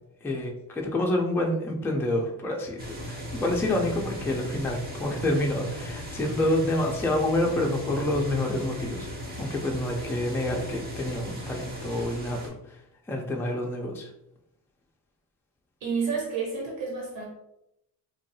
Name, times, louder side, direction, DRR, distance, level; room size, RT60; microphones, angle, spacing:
voice 1, 0.2-12.5 13.1-14.1, left 1 dB, 5° left, 0 dB, 0.3 m, -28 dB
sound 1, 2.8-12.5, equal, 20° right, 0.7 m, -37 dB
voice 2, 15.8-17.3, right 5 dB, 75° right, -3 dB, 1.3 m, -30 dB
2.6 x 2.3 x 2.6 m, 0.82 s
cardioid pair, 95°, 44 cm